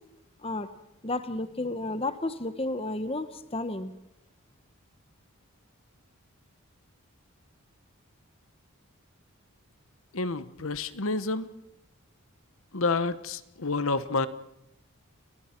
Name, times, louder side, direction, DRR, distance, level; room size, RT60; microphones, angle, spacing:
voice 1, 1.0-3.9, left 2 dB, 25° left, 11 dB, 1.1 m, -32 dB
voice 2, 10.1-11.5 12.7-14.3, left 3 dB, 70° left, 13 dB, 1.1 m, -29 dB
30.0 x 19.5 x 4.5 m, 0.85 s
head